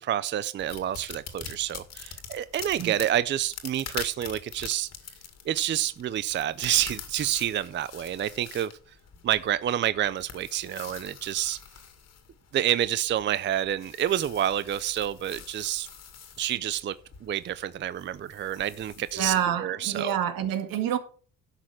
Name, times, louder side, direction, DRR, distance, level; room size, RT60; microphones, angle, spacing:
voice 1, 0.0-4.9 5.5-8.7 9.2-11.6 12.5-15.9 16.4-16.9 17.2-20.2, right 11 dB, 35° right, 0.4 m, -28 dB
sound 1, 0.6-19.5, left 7 dB, 50° left, 2.1 m, -44 dB
voice 2, 19.1-21.0, right 9 dB, 75° right, 2.1 m, -27 dB
11.5 x 6.4 x 6.0 m
cardioid pair, 115°, 35 cm